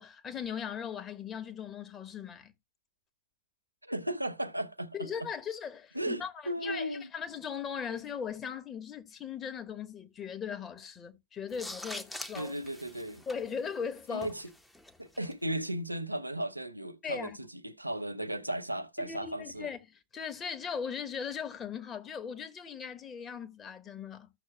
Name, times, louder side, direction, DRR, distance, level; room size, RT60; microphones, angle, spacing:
voice 1, 0.0-2.5 4.9-12.5 13.3-14.3 17.0-17.4 19.0-24.3, left 7 dB, 25° left, 1.3 m, -39 dB
voice 2, 3.8-5.1 5.9-7.1 12.3-13.2 14.1-14.5 15.0-19.7, right 1 dB, 85° right, 0.6 m, -35 dB
sound 1, 11.5-15.3, left 1 dB, 5° left, 0.9 m, -45 dB
14.5 x 6.3 x 2.2 m
figure-of-eight pair, 90°, 0 cm